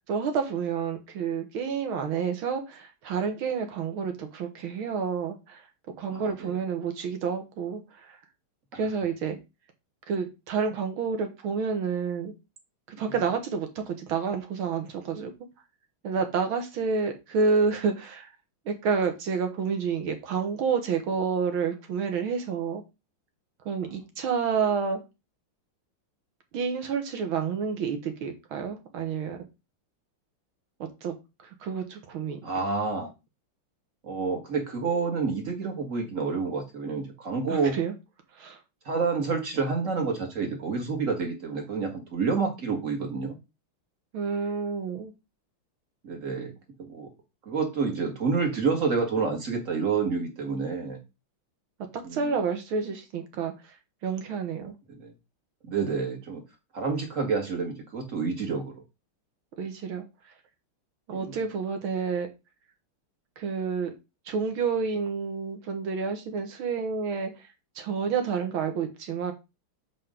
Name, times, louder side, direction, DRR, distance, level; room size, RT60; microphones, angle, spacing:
voice 1, 0.1-5.7 6.0-8.2 8.7-9.4 10.1-12.3 12.9-15.3 16.0-18.3 18.7-22.8 23.7-25.0 26.5-29.4 31.0-31.1 31.6-32.4 37.5-37.9 38.4-38.6 44.1-45.1 52.1-53.5 54.0-54.7 59.6-60.1 61.1-62.3 63.4-63.9 64.3-67.3 67.8-69.3, right 5 dB, 75° right, 2.1 m, -29 dB
voice 2, 6.1-6.6 13.1-13.2 32.4-33.1 34.0-37.8 38.9-43.4 46.0-46.5 46.9-47.1 47.5-51.0 52.0-52.3 54.9-55.1 55.6-56.4 56.7-58.8 61.1-61.4, right 5 dB, 40° right, 2.0 m, -29 dB
7.1 x 4.6 x 3.8 m
omnidirectional pair, 2.3 m